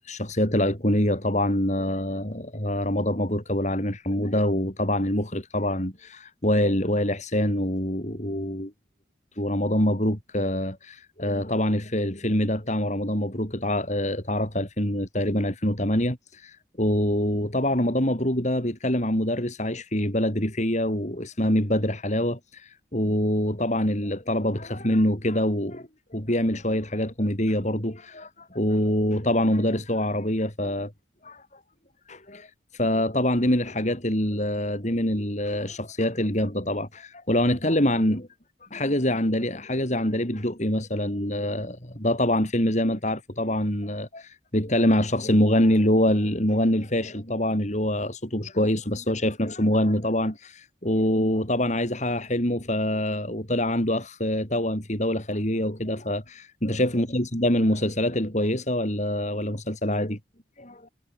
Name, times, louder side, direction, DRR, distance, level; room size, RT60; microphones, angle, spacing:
voice 1, 0.0-8.7 9.4-30.9 31.2-31.5 32.1-38.3 38.6-60.2 60.6-60.9, left 1 dB, 40° left, 6.1 m, -25 dB
head